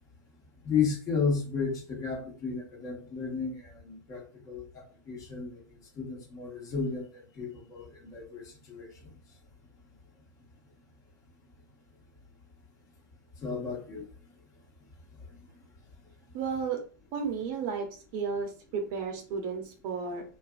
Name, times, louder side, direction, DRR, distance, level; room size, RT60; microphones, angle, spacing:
voice 1, 0.6-5.5 6.0-8.9 13.4-14.0, left 5 dB, 30° left, -1 dB, 1.1 m, -33 dB
voice 2, 16.3-16.8 17.1-17.9 18.1-20.2, right 5 dB, 50° right, 3 dB, 0.9 m, -33 dB
2.7 x 2.5 x 2.3 m, 0.38 s
hypercardioid pair, 120°, 11 cm